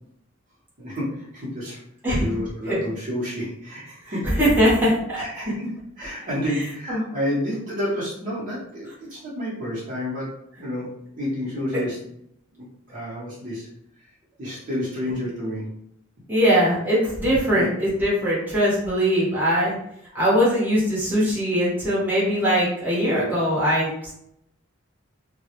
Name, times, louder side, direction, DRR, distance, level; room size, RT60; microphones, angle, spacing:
voice 1, 0.8-1.8 2.2-4.3 5.1-10.3 10.6-10.9 11.2-12.0 12.6-13.7 14.4-15.7 17.5-17.7, left 1 dB, 40° right, -7 dB, 0.8 m, -30 dB
voice 2, 4.0-5.2 6.9-7.0 16.3-19.8 20.1-23.9, equal, 10° right, -8 dB, 0.8 m, -21 dB
2.2 x 2.0 x 2.8 m, 0.74 s
head